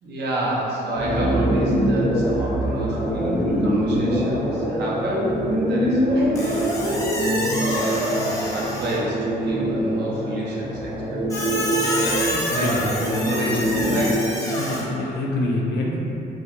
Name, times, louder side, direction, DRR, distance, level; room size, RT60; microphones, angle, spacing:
voice 1, 0.0-7.1 7.6-11.5 12.2-13.0 13.2-14.5, right 1 dB, 70° right, -5 dB, 0.6 m, -30 dB
sound 1, 0.9-14.1, equal, 25° right, 0.6 m, -23 dB
Squeak, 6.4-9.1 11.3-14.8, left 1 dB, 20° left, 0.5 m, -28 dB
voice 2, 12.5-12.9 14.5-16.0, left 2 dB, 75° left, -2 dB, 0.4 m, -26 dB
2.4 x 2.1 x 2.8 m, 2.9 s
cardioid pair, 110°, 18 cm